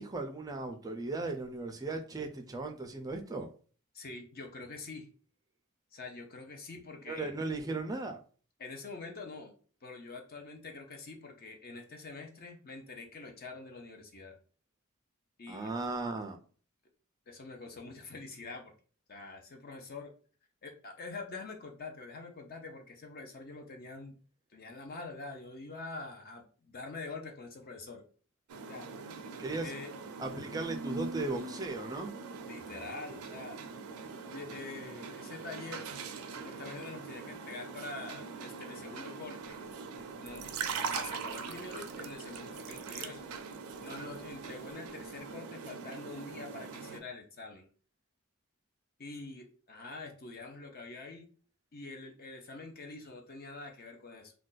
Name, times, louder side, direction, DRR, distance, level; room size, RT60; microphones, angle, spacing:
voice 1, 0.0-3.5 7.1-8.2 15.5-16.4 29.4-29.7 30.2-32.1, right 3 dB, 15° right, 0.4 m, -36 dB
voice 2, 3.9-5.1 5.9-7.3 8.6-9.5 9.8-14.4 15.4-15.7 17.3-18.7 19.1-20.1 20.6-24.2 24.5-28.0 28.7-28.9 29.6-29.9 32.4-33.6 34.3-35.9 36.3-39.6 40.2-40.4 40.8-43.2 43.8-47.7 49.0-51.3 51.7-54.3, left 3 dB, 45° left, 0.6 m, -45 dB
sound 1, 28.5-47.0, right 5 dB, 90° right, 0.4 m, -42 dB
2.5 x 2.2 x 3.8 m
head